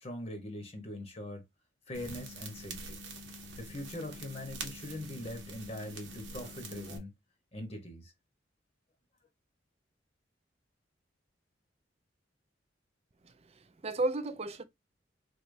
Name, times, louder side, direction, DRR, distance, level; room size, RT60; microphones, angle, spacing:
voice 1, 0.0-1.4 1.9-3.0 3.6-7.1 7.5-8.1, left 1 dB, 30° left, 0.9 m, -42 dB
sound 1, 1.9-7.0, right 2 dB, 75° right, 1.1 m, -45 dB
voice 2, 13.2-14.6, right 2 dB, 35° right, 0.5 m, -34 dB
4.1 x 3.3 x 2.6 m
head